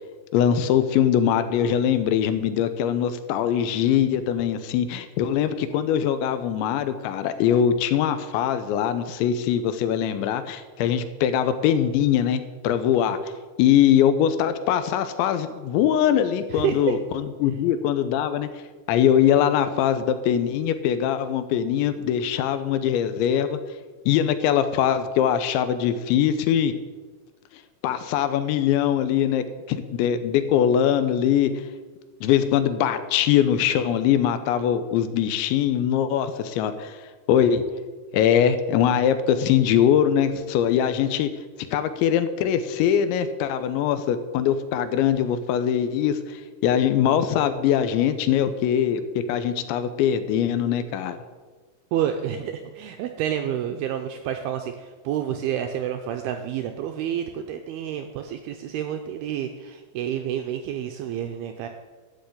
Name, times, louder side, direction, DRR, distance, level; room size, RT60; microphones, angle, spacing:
voice 1, 0.3-13.2 13.6-18.5 18.9-23.6 24.1-26.7 27.8-31.5 32.2-37.0 37.3-37.6 38.1-41.3 41.7-51.2, left 9 dB, 85° left, 11 dB, 3.1 m, -22 dB
voice 2, 16.5-17.0 51.9-61.7, right 10 dB, 90° right, 5 dB, 2.2 m, -29 dB
12.0 x 6.3 x 8.3 m, 1.4 s
omnidirectional pair, 5.1 m